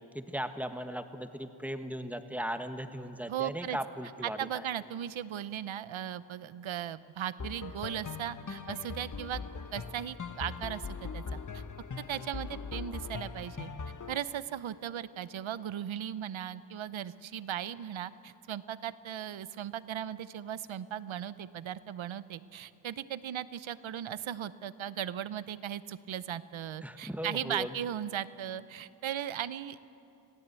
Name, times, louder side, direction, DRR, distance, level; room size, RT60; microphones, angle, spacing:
voice 1, 0.1-4.6 26.8-27.7, equal, 5° right, 7 dB, 1.5 m, -37 dB
voice 2, 3.3-3.8 4.2-9.4 9.7-11.6 12.1-13.7 14.1-29.8, right 10 dB, 75° right, 16 dB, 0.8 m, -37 dB
sound 1, 7.4-14.2, left 5 dB, 40° left, 1.2 m, -41 dB
25.5 x 16.5 x 8.3 m, 2.8 s
cardioid pair, 60°, 47 cm